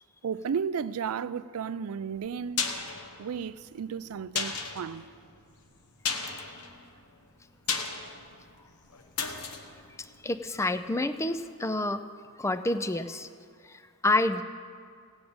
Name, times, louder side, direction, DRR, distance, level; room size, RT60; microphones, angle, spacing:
voice 1, 0.2-2.6 3.2-5.0, right 6 dB, 70° right, 0.4 m, -33 dB
sound 1, 2.2-11.0 11.3-11.4, left 5 dB, 85° left, 1.1 m, -36 dB
voice 2, 10.2-12.0 12.4-13.3 13.7-14.4, left 2 dB, 15° left, 0.4 m, -28 dB
16.0 x 6.3 x 8.8 m
head